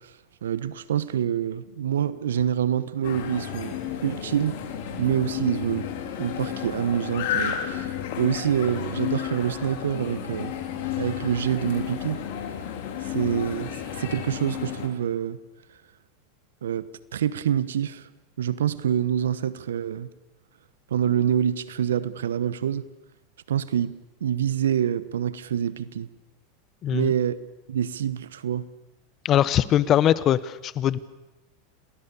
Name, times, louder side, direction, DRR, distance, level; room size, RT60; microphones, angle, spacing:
voice 1, 0.4-3.8 4.0-4.6 5.0-5.9 6.2-10.5 11.0-12.2 13.0-13.7 14.0-15.4 16.6-18.1 18.4-20.1 20.9-22.9 23.5-23.9 24.2-26.1 26.9-27.4 27.7-28.7, right 9 dB, 80° right, 1.1 m, -26 dB
sound 1, 3.0-14.9, left 9 dB, 65° left, 3.6 m, -32 dB
voice 2, 29.2-31.0, left 11 dB, 40° left, 1.1 m, -21 dB
29.0 x 20.0 x 7.1 m
hypercardioid pair, 95°, 0 cm